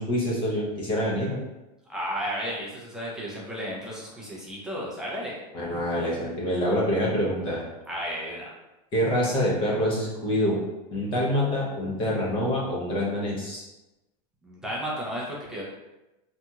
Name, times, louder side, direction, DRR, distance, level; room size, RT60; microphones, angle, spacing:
voice 1, 0.0-1.4 5.5-7.6 8.9-10.6 10.9-13.6, equal, 25° left, -4 dB, 0.7 m, -26 dB
voice 2, 1.9-5.4 7.9-8.5 14.4-15.6, equal, 5° right, -6 dB, 0.3 m, -33 dB
2.7 x 2.7 x 2.3 m, 1.0 s
supercardioid pair, 165°, 21 cm